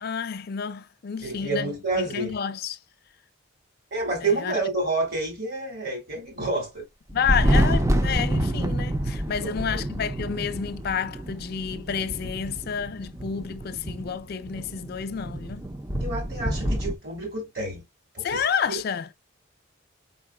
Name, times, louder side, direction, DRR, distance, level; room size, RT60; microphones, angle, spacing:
voice 1, 0.0-2.8 4.2-4.5 7.1-15.7 18.2-19.1, left 7 dB, 50° left, 0.4 m, -30 dB
voice 2, 1.2-2.4 3.9-6.8 9.4-9.8 16.0-17.8 18.1-18.4 18.7-18.8, right 2 dB, 50° right, 2.6 m, -29 dB
Thunder, 7.1-16.9, right 1 dB, 15° right, 0.4 m, -27 dB
4.8 x 3.8 x 2.2 m
head